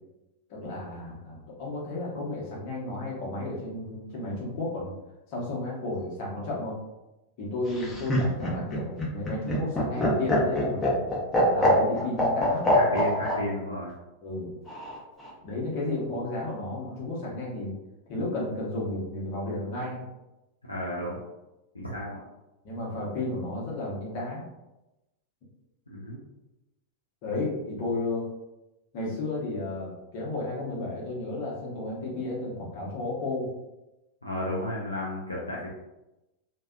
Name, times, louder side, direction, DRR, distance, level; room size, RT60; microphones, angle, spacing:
voice 1, 0.5-4.9 5.3-6.8 7.4-11.0 11.5-13.0 14.2-14.5 15.4-17.7 18.1-20.0 22.6-24.5 27.2-28.2 28.9-33.5, left 2 dB, 45° left, -4 dB, 0.9 m, -33 dB
Laughter, 7.7-13.4 14.7-15.3, left 1 dB, 10° left, 0.8 m, -24 dB
voice 2, 12.6-13.9 20.7-21.2 21.7-22.2 25.9-26.2 34.2-35.7, left 1 dB, 80° left, -5 dB, 0.4 m, -33 dB
2.6 x 2.2 x 2.4 m, 0.97 s
figure-of-eight pair, 90°, 0 cm